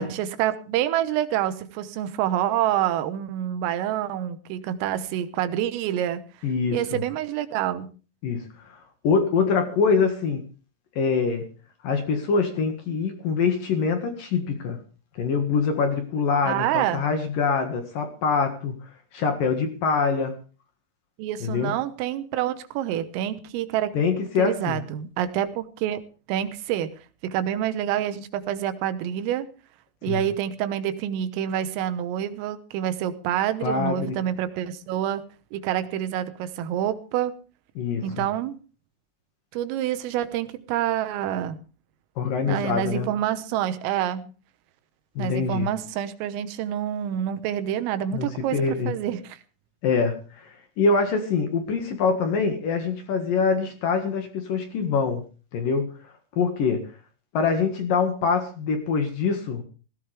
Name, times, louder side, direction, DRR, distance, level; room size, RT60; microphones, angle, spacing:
voice 1, 0.0-6.2 6.7-7.9 16.5-17.0 21.2-23.9 24.4-26.0 26.3-26.9 27.2-29.5 30.0-35.2 35.5-37.4 38.0-38.6 39.5-41.6 42.5-44.2 45.2-49.4, right 11 dB, 90° right, 11 dB, 3.8 m, -27 dB
voice 2, 6.4-7.0 8.2-10.4 11.0-11.5 11.8-14.8 15.1-18.7 19.1-20.3 21.4-21.7 23.9-24.8 30.1-30.2 33.6-34.2 37.8-38.3 42.2-43.1 45.2-45.7 48.1-48.9 49.8-55.2 55.5-55.9 56.4-56.9 57.3-59.6, left 5 dB, 55° left, 5 dB, 2.8 m, -24 dB
17.0 x 17.0 x 3.5 m, 0.36 s
omnidirectional pair, 5.7 m